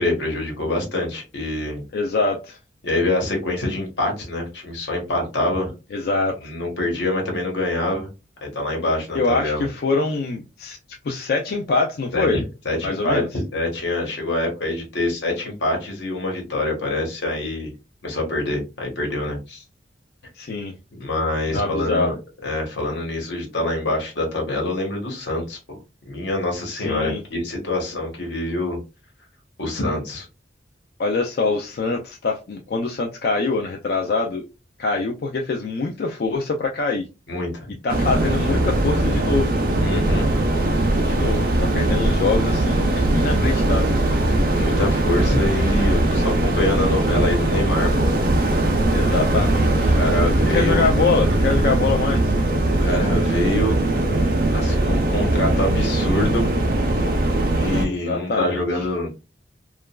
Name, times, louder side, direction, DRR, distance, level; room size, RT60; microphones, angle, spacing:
voice 1, 0.0-1.8 2.8-5.7 6.4-8.1 8.4-9.7 12.1-13.2 13.5-17.7 18.0-19.6 21.0-22.2 22.4-25.8 26.0-28.8 29.6-30.3 37.3-37.7 39.8-40.3 44.5-48.1 49.9-50.8 52.8-53.8 54.5-56.5 57.5-59.1, left 2 dB, 85° left, 1 dB, 1.1 m, -25 dB
voice 2, 1.9-2.6 5.9-6.4 9.1-10.8 11.0-12.4 12.8-13.3 20.3-20.7 21.5-22.1 26.7-27.2 31.0-34.5 34.8-37.1 37.8-39.6 41.1-44.0 48.9-50.0 50.4-52.3 57.9-58.9, left 3 dB, 60° left, 1 dB, 0.3 m, -24 dB
sound 1, 37.9-57.9, right 1 dB, 55° right, 0.5 m, -20 dB
2.9 x 2.4 x 2.2 m, 0.28 s
head